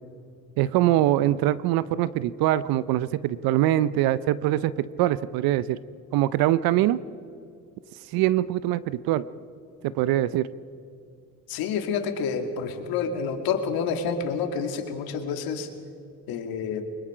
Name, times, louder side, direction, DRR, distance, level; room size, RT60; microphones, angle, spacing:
voice 1, 0.6-5.8 6.1-7.0 8.1-9.2 9.8-10.5, right 14 dB, 70° right, 17 dB, 0.7 m, -23 dB
voice 2, 11.5-15.7 16.3-16.8, left 6 dB, 70° left, 5 dB, 2.5 m, -28 dB
24.0 x 22.0 x 5.0 m, 2.6 s
cardioid pair, 100°, 37 cm